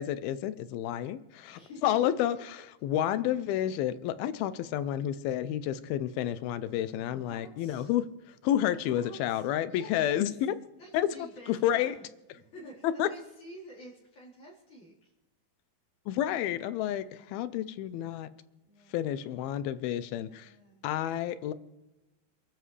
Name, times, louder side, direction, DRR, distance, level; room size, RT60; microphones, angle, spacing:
voice 1, 0.0-2.4 2.8-8.1 8.4-10.5 10.9-11.1 11.5-12.0 12.8-13.1 16.1-18.3 18.9-20.5 20.8-21.5, left 11 dB, 80° left, 14 dB, 2.5 m, -30 dB
voice 2, 1.5-1.9 7.1-7.9 8.9-10.5 10.8-12.0 12.3-15.1 18.6-19.3 20.1-20.8, equal, 50° left, -4 dB, 5.6 m, -50 dB
28.0 x 13.5 x 3.3 m, 1.0 s
omnidirectional pair, 4.5 m